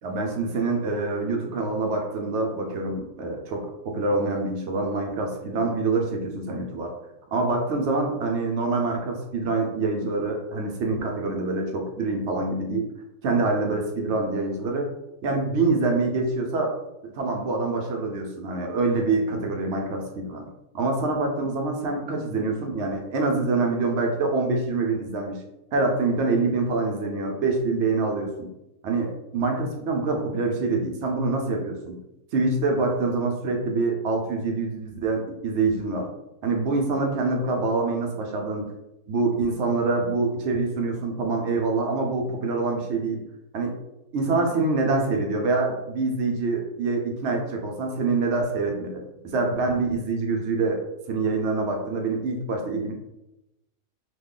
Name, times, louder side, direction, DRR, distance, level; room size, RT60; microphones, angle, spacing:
voice 1, 0.0-6.9 7.3-12.9 13.2-14.9 15.2-16.7 17.0-20.5 20.7-25.4 25.7-28.5 28.8-31.9 32.3-36.1 36.4-38.7 39.1-43.2 43.5-43.7 44.1-50.8 51.1-52.9, right 3 dB, 70° right, 2 dB, 0.7 m, -25 dB
3.1 x 2.2 x 3.7 m, 0.91 s
omnidirectional pair, 1.7 m